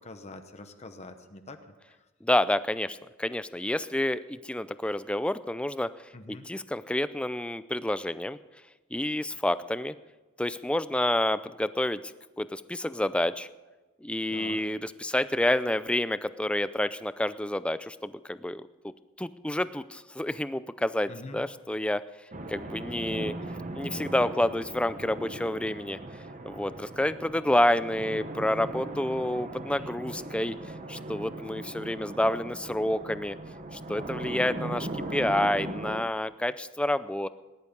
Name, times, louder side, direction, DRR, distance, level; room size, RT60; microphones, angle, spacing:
voice 1, 0.0-1.6 1.9-2.0 6.1-6.5 14.3-14.6 21.1-21.4, left 2 dB, 30° left, 7 dB, 1.0 m, -44 dB
voice 2, 2.2-5.9 6.3-8.4 8.9-10.0 10.4-12.0 12.4-13.5 14.0-18.9 19.2-22.0 22.5-23.4 23.7-26.0 26.4-30.6 30.9-33.4 33.7-37.3, left 1 dB, 5° left, 14 dB, 0.4 m, -29 dB
sound 1, 22.3-36.0, right 2 dB, 35° right, 1.0 m, -38 dB
19.0 x 11.0 x 5.2 m, 1.2 s
head